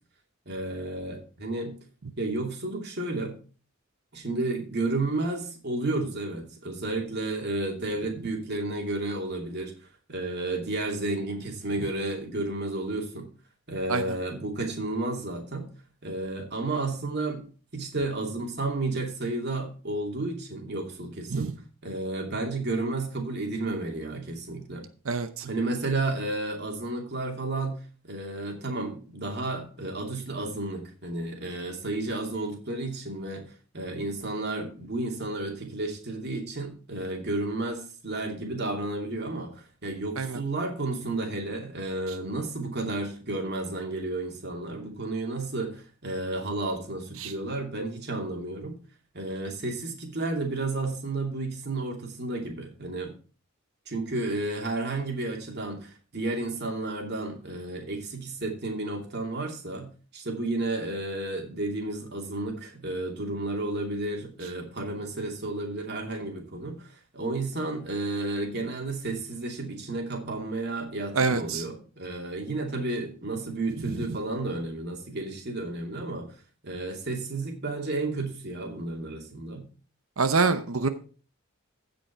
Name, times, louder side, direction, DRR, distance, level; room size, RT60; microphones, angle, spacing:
voice 1, 0.5-1.7 2.2-3.4 4.1-9.7 10.1-13.3 13.7-15.7 16.0-17.4 17.7-21.5 21.8-24.8 25.4-27.8 28.1-33.5 33.7-48.7 49.1-53.1 53.9-76.2 76.6-79.7, right 2 dB, 50° right, 2 dB, 2.6 m, -32 dB
voice 2, 25.0-25.5 40.2-40.4 47.2-47.3 71.1-71.6 80.2-80.9, right 4 dB, 75° right, 10 dB, 0.8 m, -25 dB
15.5 x 5.3 x 4.5 m, 0.38 s
head